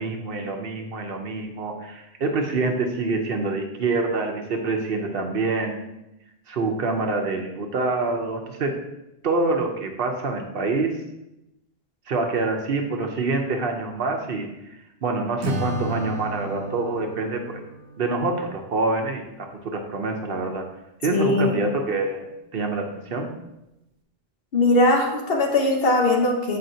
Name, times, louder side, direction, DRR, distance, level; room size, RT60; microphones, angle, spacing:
voice 1, 0.0-5.8 6.5-8.8 9.2-11.0 12.1-14.5 15.0-17.6 18.0-20.6 21.0-23.3, right 3 dB, 60° right, 3 dB, 0.9 m, -26 dB
Acoustic guitar / Strum, 15.4-18.7, right 1 dB, 90° right, 1.1 m, -33 dB
voice 2, 21.1-21.6 24.5-26.6, left 2 dB, 60° left, 0 dB, 1.2 m, -20 dB
7.6 x 4.9 x 2.7 m, 0.91 s
omnidirectional pair, 1.1 m